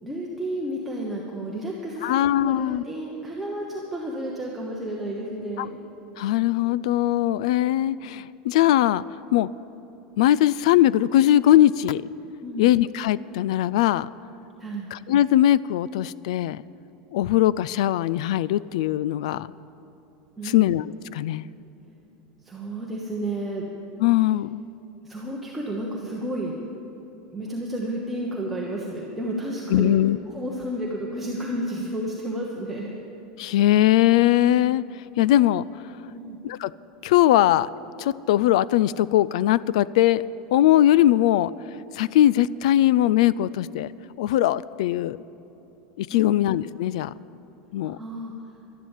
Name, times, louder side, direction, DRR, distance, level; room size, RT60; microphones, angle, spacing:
voice 1, 0.0-5.8 12.4-12.7 14.6-14.9 20.4-20.7 22.4-23.6 25.0-26.5 27.3-30.0 30.3-32.9 36.1-36.4 46.1-46.4 47.8-48.3, right 1 dB, 5° right, -4 dB, 1.1 m, -31 dB
voice 2, 2.0-2.8 6.2-9.0 9.3-9.5 10.2-12.0 12.6-14.1 14.9-16.6 17.1-19.5 20.5-20.9 21.1-21.5 24.0-24.6 29.7-30.2 33.4-34.8 35.2-35.7 36.4-36.7 37.0-37.7 38.0-40.2 40.5-41.5 42.0-43.9 44.2-45.2 46.0-47.1 47.7-48.0, left 13 dB, 80° left, 20 dB, 0.3 m, -20 dB
12.0 x 11.5 x 7.3 m, 3.0 s
supercardioid pair, 165°, 3 cm